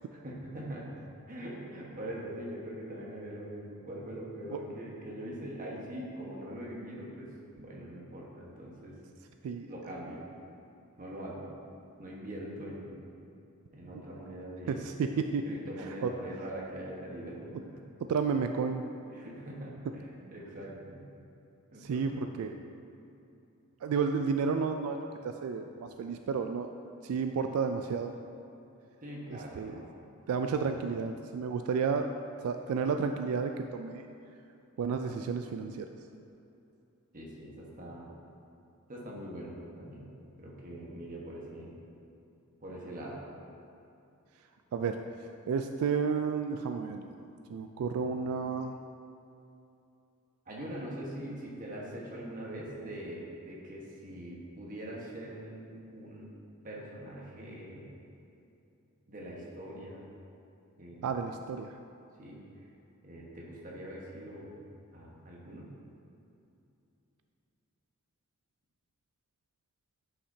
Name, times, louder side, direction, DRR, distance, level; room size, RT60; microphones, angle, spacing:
voice 1, 0.1-7.3 7.6-8.9 9.7-10.2 11.0-11.5 12.0-13.0 13.7-14.9 15.4-17.8 19.1-21.0 21.7-22.4 29.0-29.9 30.3-30.7 37.1-38.1 38.9-40.0 40.4-41.7 42.6-43.2 50.5-56.3 56.6-57.9 59.1-60.1 60.8-61.1 62.2-62.4 63.0-64.7 64.9-65.7, right 1 dB, 40° right, -4 dB, 1.2 m, -42 dB
voice 2, 14.7-15.5 16.0-16.1 18.1-18.9 21.8-22.5 23.8-26.7 27.0-28.1 29.6-29.7 30.3-32.1 32.4-34.1 34.8-35.9 44.7-45.0 45.5-48.7 61.0-61.7, right 5 dB, 85° right, 6 dB, 0.3 m, -31 dB
9.7 x 5.8 x 2.7 m, 2.7 s
head